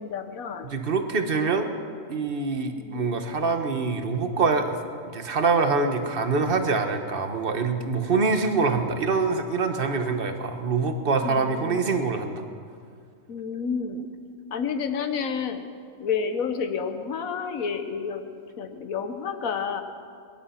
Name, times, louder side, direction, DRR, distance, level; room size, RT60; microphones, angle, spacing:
voice 1, 0.0-0.8 2.7-3.2 11.2-11.8 13.3-14.1 14.5-15.7 16.0-19.8, left 6 dB, 80° left, 8 dB, 1.5 m, -30 dB
voice 2, 0.6-1.7 2.1-4.8 5.0-12.4, right 4 dB, 45° right, 7 dB, 1.3 m, -25 dB
22.0 x 11.0 x 5.8 m, 2.2 s
omnidirectional pair, 1.4 m